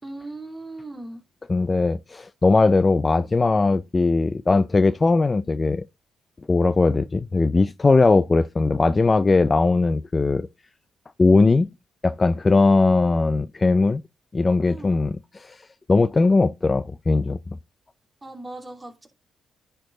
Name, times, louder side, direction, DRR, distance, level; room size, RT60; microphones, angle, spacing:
voice 1, 0.0-1.2 14.6-14.9 18.2-19.1, right 2 dB, 20° right, 2.8 m, -38 dB
voice 2, 1.5-5.8 6.5-10.5 11.2-11.7 12.0-14.0 14.3-15.6 15.9-17.4, left 3 dB, 25° left, 0.4 m, -19 dB
10.5 x 4.6 x 3.8 m
cardioid pair, 90°, 0 cm